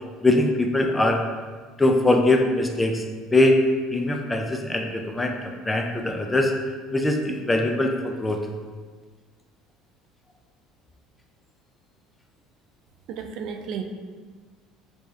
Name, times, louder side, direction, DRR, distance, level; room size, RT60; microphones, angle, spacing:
voice 1, 0.2-1.2 1.8-3.0 3.3-3.6 3.9-6.5 6.9-8.5, left 1 dB, 15° left, 3 dB, 0.4 m, -22 dB
voice 2, 13.1-13.8, right 7 dB, 65° right, 5 dB, 0.3 m, -32 dB
4.6 x 2.3 x 2.7 m, 1.4 s
supercardioid pair, 95°, 0 cm